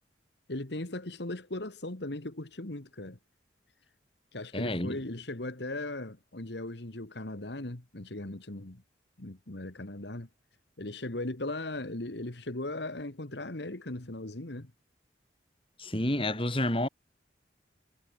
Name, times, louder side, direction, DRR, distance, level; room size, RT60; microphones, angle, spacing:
voice 1, 0.5-3.2 4.3-8.8 9.2-10.3 10.8-14.7, left 2 dB, 70° left, 1.9 m, -38 dB
voice 2, 4.5-5.0 15.8-16.9, left 1 dB, 30° left, 4.3 m, -29 dB
head